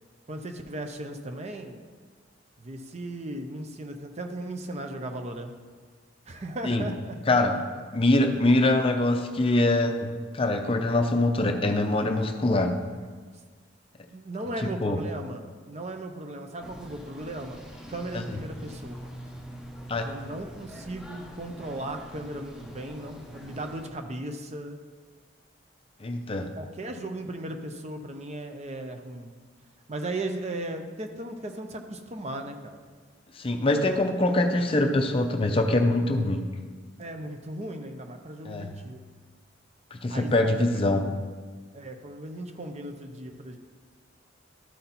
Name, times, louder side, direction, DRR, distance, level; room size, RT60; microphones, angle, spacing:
voice 1, 0.3-1.8 2.6-5.5 6.3-7.2 7.9-8.0 14.1-19.1 20.0-24.8 26.5-29.4 29.9-32.8 37.0-39.0 40.1-41.1 41.7-43.6, right 1 dB, 35° right, 6 dB, 0.6 m, -37 dB
voice 2, 7.3-7.6 7.9-12.8 14.6-15.0 19.9-20.0 26.0-26.5 33.4-36.4 38.4-38.7 39.9-41.0, left 2 dB, 30° left, 5 dB, 0.5 m, -24 dB
sound 1, 16.6-23.9, equal, 5° right, 0.8 m, -44 dB
12.5 x 4.2 x 4.1 m, 1.5 s
head